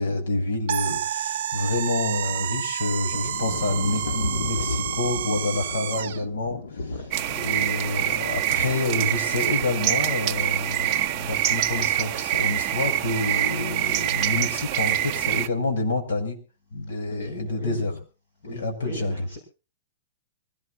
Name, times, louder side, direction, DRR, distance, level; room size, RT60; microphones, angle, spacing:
voice 1, 0.0-6.6 7.3-16.4 16.7-18.0 18.5-19.3, left 2 dB, 65° left, 4 dB, 6.9 m, -28 dB
sound 1, 0.7-6.2, right 10 dB, 45° right, 0.9 m, -29 dB
sound 2, 3.0-8.5 9.7-10.0, left 3 dB, 85° left, 2.4 m, -34 dB
sound 3, 7.1-15.5, right 13 dB, 20° right, 0.7 m, -25 dB
voice 2, 17.2-18.0 18.4-19.4, left 2 dB, 35° left, 2 dB, 7.6 m, -38 dB
24.5 x 18.0 x 2.6 m, 0.35 s
hypercardioid pair, 180°, 0 cm